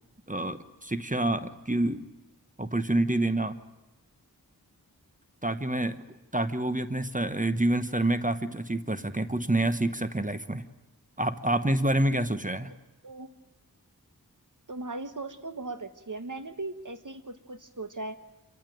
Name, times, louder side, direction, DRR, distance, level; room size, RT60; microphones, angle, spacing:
voice 1, 0.3-2.0 2.6-3.6 5.4-6.0 6.3-10.6 11.2-12.7, right 1 dB, 20° right, 11 dB, 1.1 m, -27 dB
voice 2, 14.7-18.2, right 2 dB, 55° right, 10 dB, 1.6 m, -38 dB
27.0 x 14.5 x 9.2 m, 1.0 s
wide cardioid pair, 40°, 38 cm